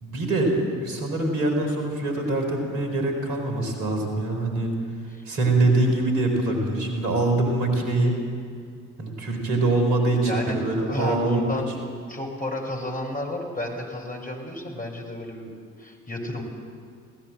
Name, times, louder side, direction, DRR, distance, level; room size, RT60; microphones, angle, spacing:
voice 1, 0.0-4.7 5.2-8.2 9.0-11.4, right 2 dB, 65° right, 3 dB, 4.3 m, -24 dB
voice 2, 10.2-16.4, left 1 dB, 20° left, 1 dB, 5.2 m, -32 dB
21.5 x 16.5 x 7.7 m, 2.1 s
figure-of-eight pair, 45°, 39 cm